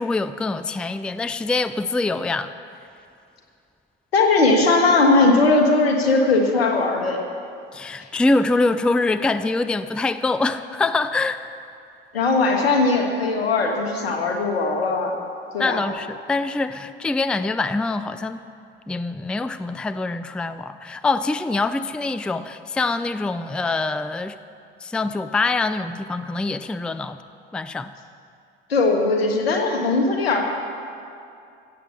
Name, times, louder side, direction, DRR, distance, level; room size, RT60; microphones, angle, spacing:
voice 1, 0.0-2.5 7.7-11.4 15.6-18.4 18.9-24.4 24.8-27.2 27.5-27.9, left 3 dB, 5° left, 12 dB, 0.4 m, -24 dB
voice 2, 4.1-7.2 8.0-8.1 12.1-15.2 15.5-15.8 28.7-30.4, left 3 dB, 80° left, 3 dB, 1.5 m, -19 dB
15.0 x 8.2 x 6.9 m, 2.5 s
figure-of-eight pair, 55°, 30 cm